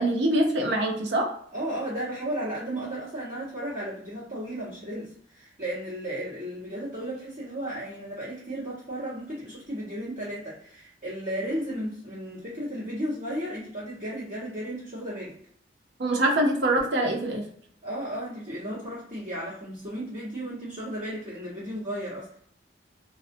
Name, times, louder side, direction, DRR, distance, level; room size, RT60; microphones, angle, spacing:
voice 1, 0.0-1.4 16.0-17.4, right 1 dB, 70° right, 1 dB, 0.6 m, -24 dB
voice 2, 1.5-15.4 17.8-22.3, right 1 dB, 45° right, -10 dB, 1.2 m, -34 dB
2.4 x 2.0 x 2.6 m, 0.63 s
head